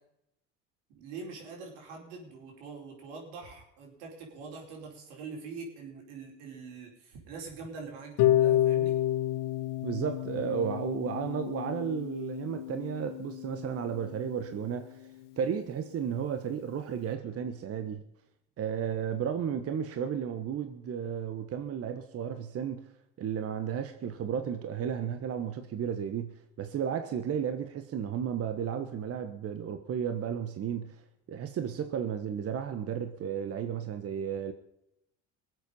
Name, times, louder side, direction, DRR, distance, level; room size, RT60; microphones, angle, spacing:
voice 1, 0.9-9.0, right 4 dB, 85° right, 0 dB, 5.0 m, -44 dB
Harp, 8.2-14.2, left 13 dB, 65° left, 1.3 m, -30 dB
voice 2, 9.8-15.1 15.4-18.0 18.6-22.8 23.2-31.0 31.3-34.5, right 8 dB, 45° right, 8 dB, 1.3 m, -33 dB
21.0 x 8.1 x 5.5 m, 0.81 s
supercardioid pair, 95°, 34 cm